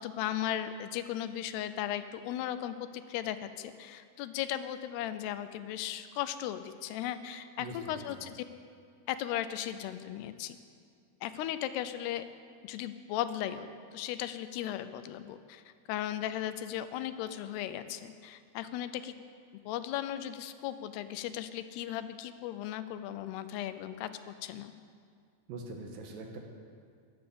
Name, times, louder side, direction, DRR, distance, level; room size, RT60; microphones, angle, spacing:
voice 1, 0.0-8.4 9.1-10.6 11.2-12.3 12.6-13.7 13.9-19.1 19.7-24.7, left 11 dB, 85° left, 11 dB, 2.7 m, -36 dB
voice 2, 7.6-8.0 25.5-26.4, right 2 dB, 65° right, 2 dB, 2.9 m, -42 dB
15.5 x 12.0 x 7.0 m, 2.2 s
omnidirectional pair, 4.7 m